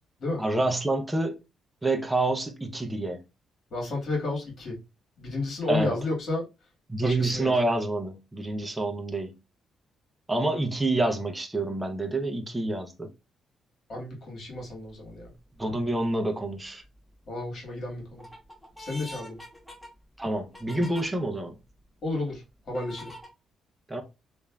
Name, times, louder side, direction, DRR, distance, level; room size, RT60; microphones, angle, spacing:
voice 1, 0.4-1.4 1.8-3.2 5.7-5.9 6.9-9.3 10.3-13.1 15.6-16.8 20.2-21.6 23.9-24.0, right 2 dB, 10° right, 0.5 m, -27 dB
voice 2, 3.7-4.7 5.2-6.4 7.0-7.6 13.9-15.3 17.3-18.2 18.8-19.4 22.0-23.1, left 2 dB, 55° left, 1.6 m, -32 dB
sound 1, 14.6-14.9 15.5-16.2 16.7-17.3 17.8-21.0 21.7-21.8 22.7-23.3, equal, 5° left, 1.1 m, -45 dB
3.1 x 2.4 x 2.2 m
cardioid pair, 90°, 0 cm